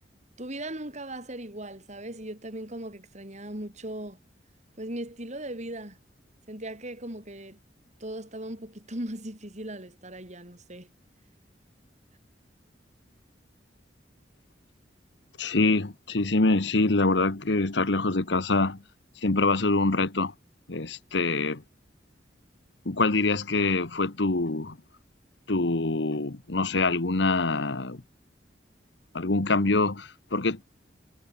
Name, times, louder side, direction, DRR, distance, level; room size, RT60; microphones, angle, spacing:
voice 1, 0.4-4.2 4.8-6.0 6.5-7.6 8.0-10.9, right 1 dB, 40° right, 6.5 m, -38 dB
voice 2, 15.4-18.8 19.2-20.3 20.7-21.6 22.9-24.7 25.5-28.0 29.1-30.6, left 3 dB, 70° left, 1.3 m, -25 dB
head